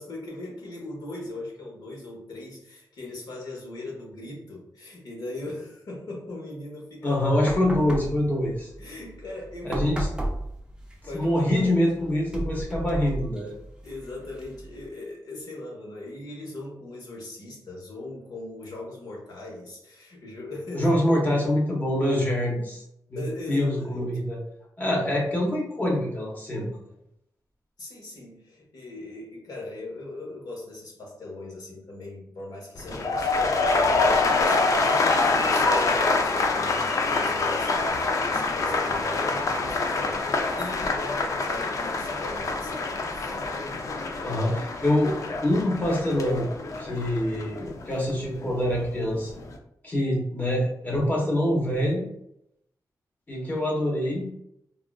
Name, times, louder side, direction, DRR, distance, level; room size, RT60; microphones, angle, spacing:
voice 1, 0.0-7.5 8.8-9.8 11.0-11.7 13.8-20.9 23.2-24.2 27.8-37.9 38.3-43.3, left 2 dB, 70° left, -2 dB, 1.1 m, -39 dB
voice 2, 7.0-8.7 9.6-10.1 11.1-13.5 20.7-22.8 23.1-23.2 23.5-24.4 24.8-26.8 44.2-45.1 45.4-46.5 46.8-49.4 49.8-52.0 53.3-54.3, left 1 dB, 25° left, -3 dB, 1.0 m, -25 dB
sound 1, 7.4-14.9, right 1 dB, 10° right, 0.4 m, -35 dB
sound 2, 32.8-48.8 49.1-49.6, left 3 dB, 50° left, 0.4 m, -26 dB
3.6 x 2.4 x 2.3 m, 0.77 s
wide cardioid pair, 140°, 7 cm